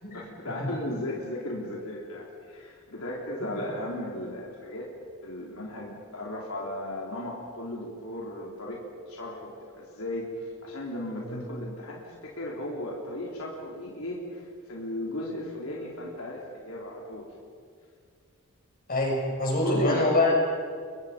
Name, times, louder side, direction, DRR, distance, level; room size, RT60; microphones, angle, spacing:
voice 1, 0.1-4.9 5.2-17.3 19.6-20.0, left 1 dB, 85° left, -3 dB, 4.0 m, -36 dB
voice 2, 18.9-20.3, left 2 dB, 40° left, -1 dB, 6.7 m, -25 dB
29.0 x 25.0 x 5.4 m, 2.2 s
head